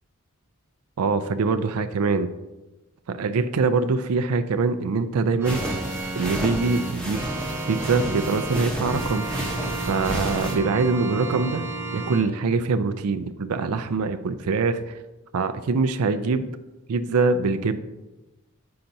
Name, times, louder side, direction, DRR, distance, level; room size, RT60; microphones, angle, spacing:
voice 1, 1.0-2.3 3.1-5.6 6.2-7.2 7.7-9.3 9.9-11.7 11.9-15.0 15.3-16.5 16.9-17.8, right 4 dB, 90° right, 10 dB, 0.4 m, -23 dB
sound 1, 5.4-10.5, equal, 5° left, 0.9 m, -32 dB
Organ, 5.4-12.2, right 2 dB, 10° right, 0.4 m, -32 dB
8.6 x 5.7 x 2.7 m, 1.1 s
head